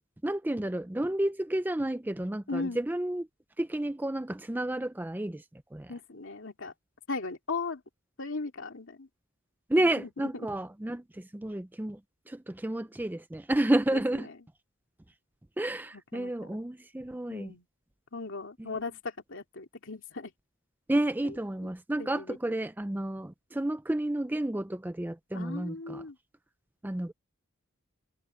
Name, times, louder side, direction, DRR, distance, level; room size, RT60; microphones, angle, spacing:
voice 1, 0.2-3.3 3.6-5.4 5.7-5.9 9.7-12.0 12.3-14.3 15.6-17.5 18.6-18.7 20.9-26.0 26.8-27.1, right 1 dB, 10° right, 0.4 m, -31 dB
voice 2, 2.5-2.8 5.9-6.7 7.1-7.8 8.2-9.1 13.9-14.0 16.1-16.3 17.3-17.6 18.1-18.9 19.3-20.3 22.0-22.4 25.3-26.1, left 3 dB, 60° left, 2.6 m, -37 dB
head